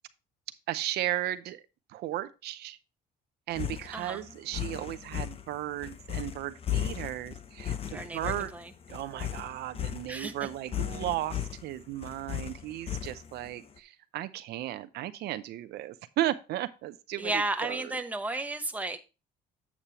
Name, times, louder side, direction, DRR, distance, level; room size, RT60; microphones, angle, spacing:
voice 1, 0.7-1.6 1.9-2.8 3.5-8.5 8.9-18.0, right 14 dB, 75° right, 12 dB, 0.6 m, -35 dB
sound 1, 3.5-13.5, left 10 dB, 35° left, 0.8 m, -36 dB
voice 2, 3.9-4.2 7.9-8.7 10.1-10.5 17.2-19.0, right 2 dB, 10° right, 5 dB, 1.0 m, -33 dB
8.2 x 7.3 x 2.9 m, 0.29 s
cardioid pair, 110°, 17 cm